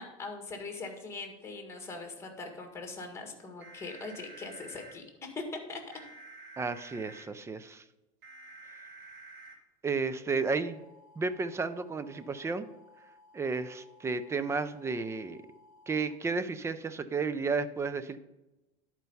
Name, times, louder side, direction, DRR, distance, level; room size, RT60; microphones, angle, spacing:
voice 1, 0.0-5.0 5.3-5.8, left 3 dB, 15° left, 4 dB, 1.8 m, -41 dB
sound 1, 3.6-4.9 5.9-7.2 8.2-9.5 10.5-16.1, right 2 dB, 60° right, 2.5 m, -53 dB
voice 2, 6.6-7.8 9.8-10.8 11.2-12.7 13.3-15.4 15.9-18.2, right 4 dB, 15° right, 13 dB, 0.5 m, -32 dB
10.5 x 4.6 x 5.5 m, 1.0 s
supercardioid pair, 130°, 18 cm